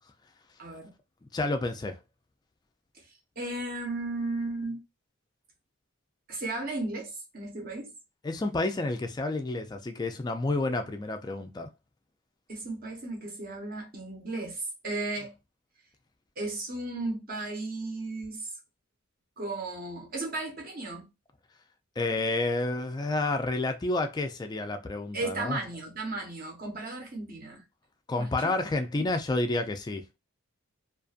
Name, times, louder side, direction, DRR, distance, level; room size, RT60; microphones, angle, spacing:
voice 1, 0.6-0.9 2.9-3.0 3.4-4.8 6.3-7.9 12.5-15.3 16.4-18.5 19.4-21.1 25.1-27.6 28.2-28.3 29.0-29.1, right 2 dB, 45° right, 0.9 m, -35 dB
voice 2, 1.3-2.0 8.2-11.7 22.0-25.6 28.1-30.0, left 2 dB, 20° left, 0.3 m, -30 dB
2.5 x 2.5 x 2.4 m
head